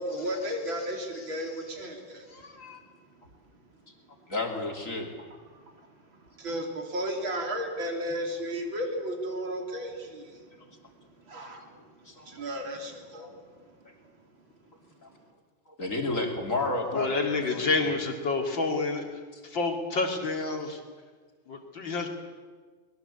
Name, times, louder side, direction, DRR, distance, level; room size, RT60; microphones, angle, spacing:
voice 1, 0.0-2.9 5.5-13.5 15.1-15.2, equal, 70° right, 2 dB, 4.1 m, -35 dB
voice 2, 2.3-2.8 16.9-20.8 21.5-22.1, left 3 dB, 65° left, 3 dB, 3.4 m, -29 dB
voice 3, 4.3-5.1 11.7-12.4 13.1-13.3 13.8-13.9 15.0-15.1 15.7-18.0, left 2 dB, 40° left, 2 dB, 3.4 m, -32 dB
23.5 x 21.0 x 8.2 m, 1.5 s
omnidirectional pair, 2.2 m